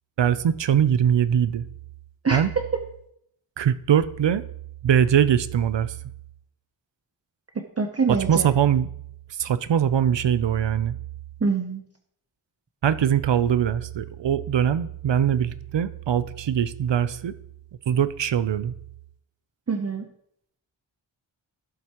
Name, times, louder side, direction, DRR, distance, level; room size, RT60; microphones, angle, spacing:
voice 1, 0.2-1.7 2.3-2.5 3.6-4.4 4.8-6.0 8.1-8.9 9.4-11.0 12.8-17.3 17.9-18.7, right 9 dB, 65° right, 15 dB, 0.6 m, -22 dB
voice 2, 7.8-8.5 11.4-11.8 19.7-20.1, right 4 dB, 30° right, 5 dB, 0.7 m, -24 dB
12.0 x 7.9 x 2.9 m, 0.71 s
wide cardioid pair, 80°, 48 cm